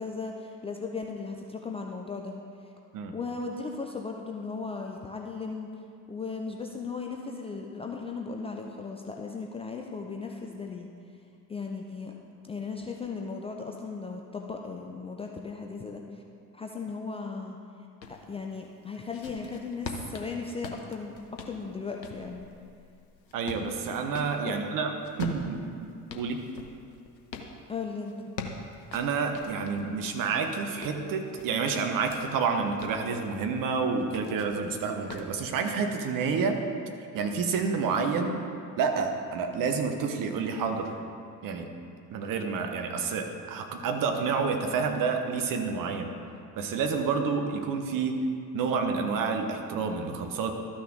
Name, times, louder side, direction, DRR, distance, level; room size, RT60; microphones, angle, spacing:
voice 1, 0.0-2.3 3.1-5.7 6.1-10.9 11.5-12.1 12.4-16.2 16.5-17.6 18.1-22.5 24.5-24.6 27.7-28.3, left 4 dB, 15° left, 1 dB, 0.4 m, -36 dB
sound 1, 18.0-18.2 18.8-24.4 25.0-27.5 28.1-29.9 30.4-32.2 32.6-33.0 34.0-34.6 35.1-35.3, left 5 dB, 85° left, 0.8 m, -42 dB
voice 2, 23.3-24.9 25.2-26.4 28.9-36.6 37.1-38.4 38.8-40.9 41.4-41.7 42.1-46.1 46.5-48.2 48.5-50.5, right 5 dB, 40° right, 5 dB, 1.1 m, -29 dB
12.5 x 6.2 x 3.8 m, 2.4 s
figure-of-eight pair, 60°, 50 cm